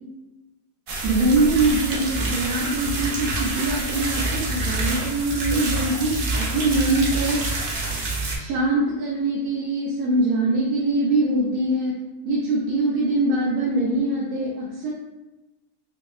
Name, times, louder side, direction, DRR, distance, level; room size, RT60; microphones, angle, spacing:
sound 1, 0.9-8.4, right 2 dB, 55° right, 0.6 m, -27 dB
voice 1, 1.0-7.4 8.4-11.9 12.2-14.9, right 2 dB, 85° right, -5 dB, 1.1 m, -23 dB
5.4 x 2.1 x 2.3 m, 1.1 s
omnidirectional pair, 1.5 m